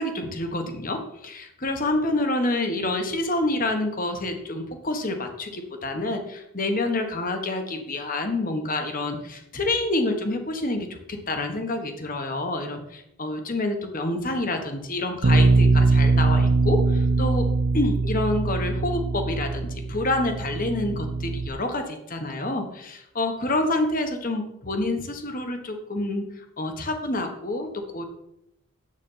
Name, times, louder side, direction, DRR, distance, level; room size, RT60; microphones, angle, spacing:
voice 1, 0.0-17.5 17.7-26.2 26.6-28.0, left 2 dB, 40° left, 6 dB, 1.4 m, -28 dB
Bass guitar, 15.2-21.5, right 3 dB, 60° right, 0.7 m, -22 dB
9.8 x 8.3 x 5.7 m, 0.82 s
head